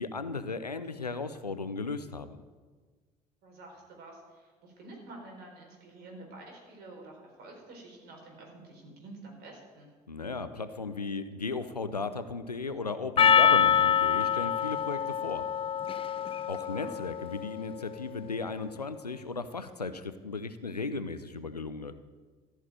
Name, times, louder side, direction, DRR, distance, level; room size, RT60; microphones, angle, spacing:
voice 1, 0.0-2.4 10.1-15.4 16.5-21.9, left 4 dB, 90° left, 11 dB, 0.6 m, -36 dB
voice 2, 3.4-9.9 16.6-16.9, right 2 dB, 55° right, 1 dB, 4.3 m, -49 dB
Percussion, 13.2-17.8, left 8 dB, 30° left, 0.6 m, -26 dB
14.5 x 6.5 x 8.9 m, 1.4 s
figure-of-eight pair, 50°, 20 cm